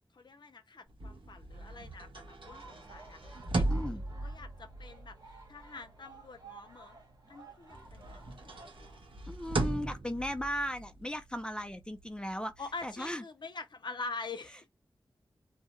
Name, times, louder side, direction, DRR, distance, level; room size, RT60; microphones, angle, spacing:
voice 1, 0.1-7.0 7.3-9.0 12.6-14.7, left 3 dB, 60° left, 0.6 m, -45 dB
sound 1, 0.9-7.4 7.7-13.1, right 2 dB, 80° right, 1.1 m, -38 dB
sound 2, 2.4-8.8, right 4 dB, 50° right, 1.5 m, -54 dB
voice 2, 3.7-4.0 9.3-12.5 12.8-13.2, equal, 10° left, 0.4 m, -36 dB
2.7 x 2.1 x 3.1 m
wide cardioid pair, 105°, 9 cm